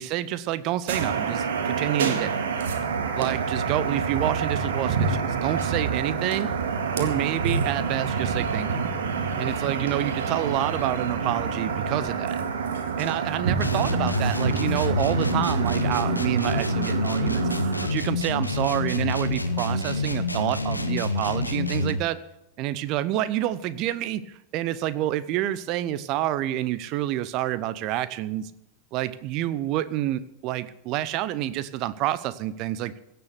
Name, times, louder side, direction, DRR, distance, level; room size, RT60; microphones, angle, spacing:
voice 1, 0.0-2.4 3.1-6.5 7.0-8.8 9.4-12.4 13.0-17.6 17.9-22.2 22.6-28.5 28.9-33.0, right 13 dB, 40° right, 16 dB, 0.8 m, -28 dB
sound 1, 0.9-17.9, right 5 dB, 60° right, 1.9 m, -27 dB
sound 2, 13.6-22.1, left 2 dB, 85° left, 1.1 m, -27 dB
16.5 x 7.0 x 8.2 m, 0.87 s
figure-of-eight pair, 90°, 0 cm